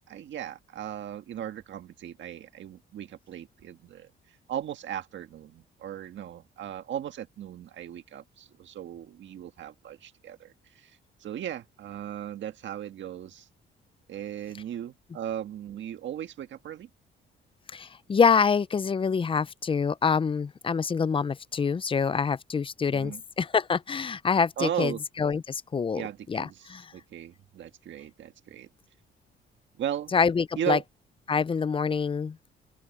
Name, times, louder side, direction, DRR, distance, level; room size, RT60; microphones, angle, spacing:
voice 1, 0.1-13.5 14.1-16.9 22.9-23.2 24.6-25.0 25.9-28.7 29.8-30.1 30.6-30.8, right 10 dB, 70° right, 1.6 m, -37 dB
voice 2, 17.7-24.9 25.2-26.0 26.3-26.8 30.1-30.8 31.3-32.4, left 5 dB, 25° left, 0.5 m, -26 dB
open air
cardioid pair, 90°, 20 cm